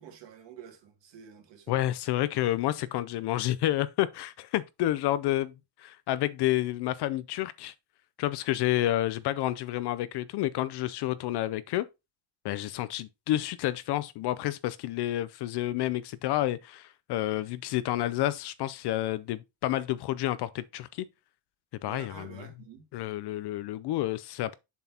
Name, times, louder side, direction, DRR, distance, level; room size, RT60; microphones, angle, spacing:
voice 1, 0.0-1.8 21.8-22.9, right 8 dB, 60° right, 2.3 m, -48 dB
voice 2, 1.7-5.5 5.8-7.7 8.2-11.9 12.4-21.1 21.8-22.5 22.9-24.5, left 14 dB, 60° left, 0.5 m, -29 dB
7.1 x 6.0 x 2.8 m
cardioid pair, 150°, 47 cm